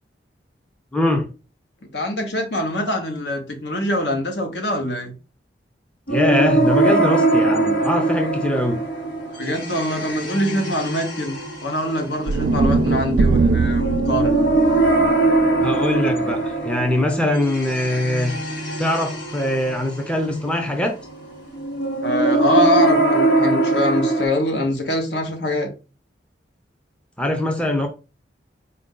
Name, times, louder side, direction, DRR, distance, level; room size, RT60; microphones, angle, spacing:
voice 1, 0.9-1.3 6.1-8.8 15.6-18.4 18.8-21.0 27.2-27.9, left 1 dB, 5° left, 0.4 m, -22 dB
voice 2, 1.9-5.1 9.4-14.3 16.1-16.2 22.0-25.7, left 1 dB, 75° left, 1.1 m, -23 dB
sound 1, 6.1-24.3, right 2 dB, 90° left, 1.3 m, -22 dB
sound 2, 12.2-16.5, right 3 dB, 55° right, 0.3 m, -22 dB
4.4 x 2.6 x 3.7 m
head